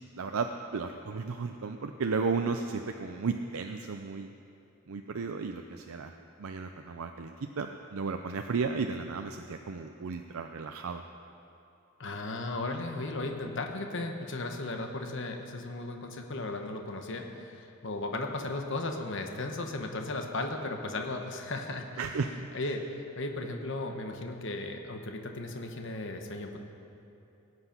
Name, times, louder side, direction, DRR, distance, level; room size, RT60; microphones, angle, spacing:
voice 1, 0.0-4.3 4.9-6.1 6.4-11.0 22.0-22.5, right 4 dB, 80° right, 5 dB, 0.5 m, -34 dB
voice 2, 12.0-21.9 22.5-26.6, left 2 dB, 60° left, 4 dB, 1.1 m, -36 dB
18.0 x 7.9 x 5.9 m, 2.8 s
head